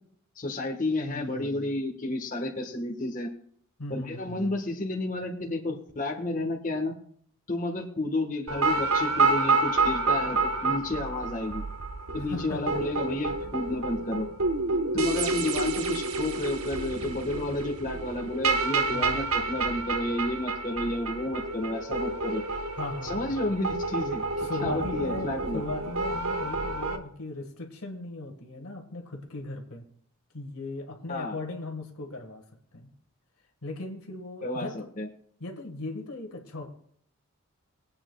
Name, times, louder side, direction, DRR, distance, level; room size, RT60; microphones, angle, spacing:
voice 1, 0.4-3.3 3.9-6.9 7.5-11.6 12.1-14.3 14.9-22.4 23.0-25.6 31.1-31.4 34.4-34.7 35.0-35.1, left 2 dB, 35° left, 2 dB, 1.3 m, -31 dB
voice 2, 1.1-1.7 3.8-4.5 12.2-12.8 18.9-19.3 22.7-23.5 24.4-29.9 30.3-32.5 32.7-32.9 33.6-34.9 35.4-36.7, left 2 dB, 85° left, 4 dB, 1.6 m, -38 dB
sound 1, 8.5-27.0, right 3 dB, 80° right, 1.0 m, -29 dB
22.0 x 8.7 x 2.3 m, 0.63 s
head